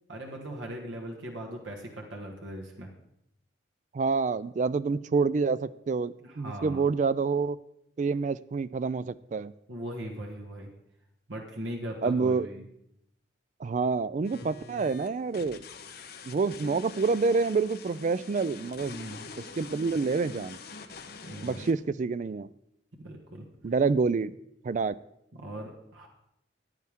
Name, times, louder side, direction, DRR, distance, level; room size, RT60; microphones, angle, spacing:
voice 1, 0.1-2.9 6.2-6.8 9.7-10.7 11.3-12.6 18.9-19.3 21.2-21.7 23.0-23.5 25.3-26.1, right 1 dB, 80° right, 1 dB, 1.6 m, -39 dB
voice 2, 3.9-7.6 8.0-9.5 12.0-12.5 13.6-15.6 16.3-18.9 19.6-20.6 21.4-22.5 23.6-24.3 24.6-25.0, right 4 dB, 40° right, 16 dB, 0.3 m, -27 dB
sound 1, 14.2-21.7, left 4 dB, 55° left, 0.9 m, -45 dB
15.0 x 9.6 x 3.6 m, 0.80 s
head